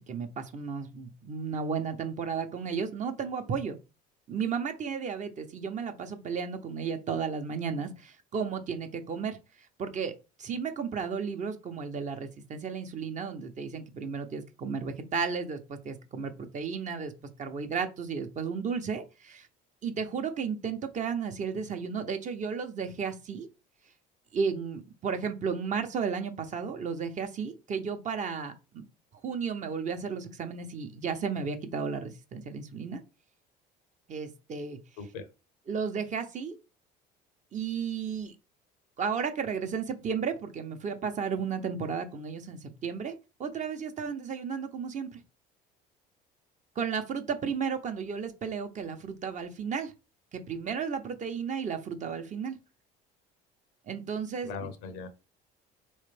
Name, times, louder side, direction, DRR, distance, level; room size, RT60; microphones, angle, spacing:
voice 1, 0.1-3.8 4.3-9.4 9.8-10.1 10.4-17.1 17.4-19.5 19.8-23.5 24.3-28.8 29.2-33.0 34.1-34.8 35.7-36.6 37.5-38.3 39.0-45.2 46.8-49.9 50.3-52.6 53.9-54.7, right 6 dB, 40° right, 0.9 m, -33 dB
voice 2, 54.4-55.1, left 5 dB, 85° left, 0.8 m, -39 dB
4.3 x 3.2 x 3.3 m
supercardioid pair, 85°, 19 cm